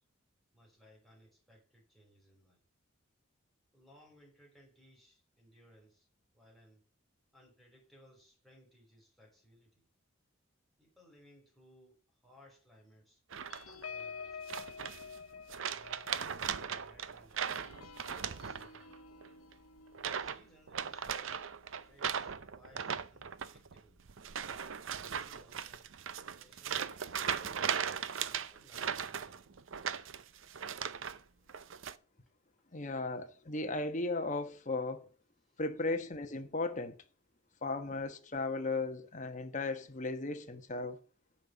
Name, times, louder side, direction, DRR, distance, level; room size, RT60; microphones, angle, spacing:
voice 1, 0.5-2.6 3.7-6.1 6.3-6.8 7.3-9.8 10.8-13.2 13.5-14.8 15.6-17.4 17.8-19.0 20.2-21.4 21.8-24.0 25.0-25.9 26.2-27.7 28.3-29.8 35.5-35.6, equal, ahead, 4.0 m, -63 dB
sound 1, 13.3-13.9 14.5-15.2 15.5-19.0 19.2-19.5 19.9-20.4 20.7-31.2 31.5-31.9, right 7 dB, 65° right, 0.6 m, -38 dB
sound 2, 13.5-22.4 22.9-23.1 23.4-23.7, left 5 dB, 90° left, 0.9 m, -50 dB
voice 2, 32.7-35.1 35.6-37.0 37.6-41.0, left 3 dB, 35° left, 1.2 m, -36 dB
9.0 x 5.6 x 7.7 m
head